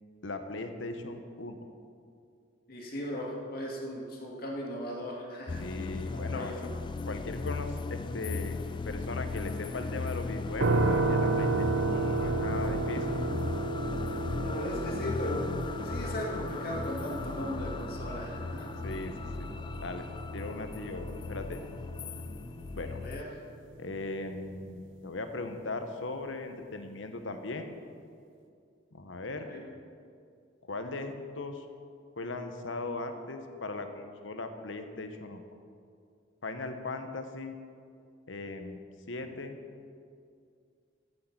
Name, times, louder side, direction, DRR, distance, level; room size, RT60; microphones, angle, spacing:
voice 1, 0.2-1.6 5.6-6.5 7.1-8.6 8.8-13.1 18.8-19.5 19.8-20.1 20.3-21.7 22.7-23.0 23.8-27.7 28.9-29.5 30.6-31.7 32.2-35.4 36.4-37.5 38.3-38.8 39.1-39.6, left 2 dB, 75° left, 7 dB, 1.0 m, -38 dB
voice 2, 2.7-5.6 6.3-6.8 14.4-15.5 15.8-18.7 22.9-23.4 29.5-29.7, left 1 dB, 50° left, -1 dB, 2.1 m, -37 dB
sound 1, 5.5-23.2, left 3 dB, 25° left, 0.3 m, -37 dB
sound 2, 10.6-23.5, right 3 dB, 80° right, 0.8 m, -33 dB
14.5 x 6.5 x 5.9 m, 2.3 s
head